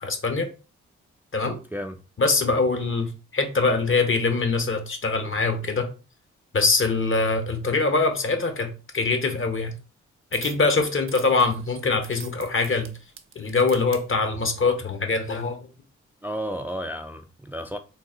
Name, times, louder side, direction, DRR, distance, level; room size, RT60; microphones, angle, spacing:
voice 1, 0.0-0.5 1.3-1.6 2.2-5.9 6.5-9.7 10.3-12.9 13.3-15.6, left 3 dB, 40° left, 1.1 m, -23 dB
sound 1, 10.3-10.7 11.1-14.0 14.8-15.0, right 6 dB, 45° right, 0.7 m, -43 dB
voice 2, 16.2-17.8, equal, 5° right, 0.4 m, -32 dB
3.9 x 2.3 x 3.8 m
supercardioid pair, 50°, 31 cm